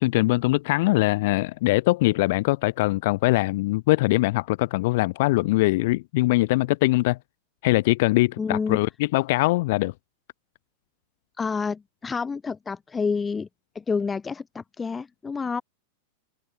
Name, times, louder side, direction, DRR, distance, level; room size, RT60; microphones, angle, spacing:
voice 1, 0.0-7.2 7.6-9.9, left 20 dB, 50° left, 1.1 m, -22 dB
voice 2, 8.4-8.8 11.4-13.5 13.7-15.6, left 5 dB, 15° left, 2.3 m, -28 dB
figure-of-eight pair, 90°, 0 cm